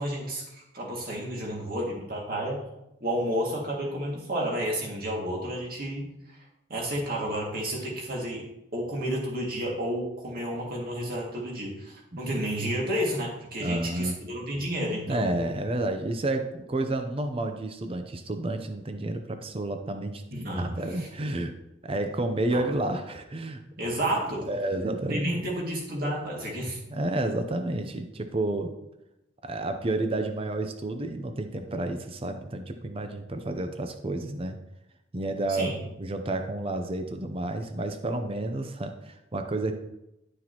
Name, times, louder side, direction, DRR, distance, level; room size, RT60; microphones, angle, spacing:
voice 1, 0.0-2.6 3.0-6.4 6.7-8.4 8.7-15.5 20.3-21.1 22.5-22.6 23.8-24.5 25.1-26.8 35.5-35.8, equal, 50° right, -2 dB, 2.2 m, -31 dB
voice 2, 13.6-14.1 15.1-21.5 21.8-23.6 24.4-25.4 26.9-28.7 29.4-34.6 35.1-39.8, right 2 dB, 30° right, 7 dB, 0.6 m, -30 dB
11.0 x 6.4 x 3.0 m, 0.88 s
head